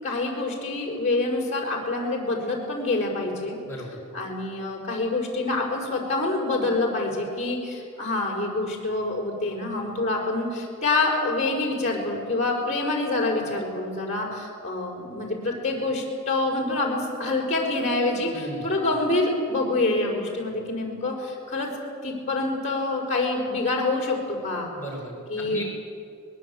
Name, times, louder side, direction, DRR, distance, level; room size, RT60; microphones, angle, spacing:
voice 1, 0.0-3.6 4.1-21.7 22.0-24.7 25.3-25.6, left 2 dB, 30° left, -2 dB, 5.2 m, -26 dB
voice 2, 3.7-4.0 18.3-18.7 24.7-25.6, equal, 10° left, -4 dB, 6.7 m, -36 dB
22.5 x 21.0 x 8.7 m, 2.4 s
head